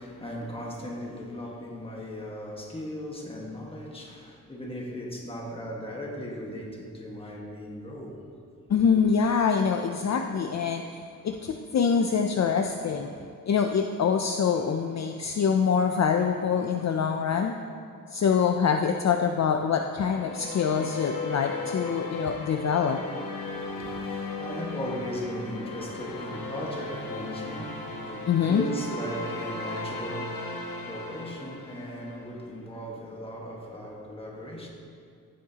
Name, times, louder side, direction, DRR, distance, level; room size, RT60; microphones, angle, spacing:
voice 1, 0.0-8.2 8.5-8.6 8.9-9.0 23.4-34.7, equal, 15° left, 1.5 m, -37 dB
voice 2, 8.7-10.9 11.2-13.1 13.5-17.5 18.1-23.0 28.3-28.6, left 6 dB, 50° left, 0.5 m, -25 dB
sound 1, 20.0-32.4, left 3 dB, 80° left, 1.3 m, -36 dB
15.0 x 8.6 x 2.9 m
wide cardioid pair, 155°, 34 cm